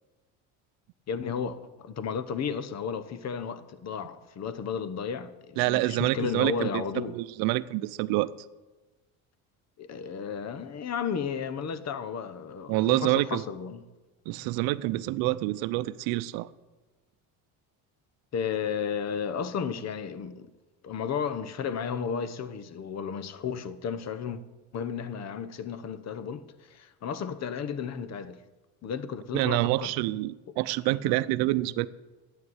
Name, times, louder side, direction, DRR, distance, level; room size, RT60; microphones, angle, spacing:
voice 1, 1.1-7.2 9.8-13.8 18.3-20.5 20.8-24.4 24.7-28.4 28.8-29.9, left 7 dB, 45° left, 1.1 m, -33 dB
voice 2, 5.6-6.8 7.1-8.3 12.7-13.4 14.3-16.5 29.3-31.9, right 17 dB, 80° right, 0.7 m, -27 dB
11.0 x 9.3 x 8.0 m
supercardioid pair, 95°, 36 cm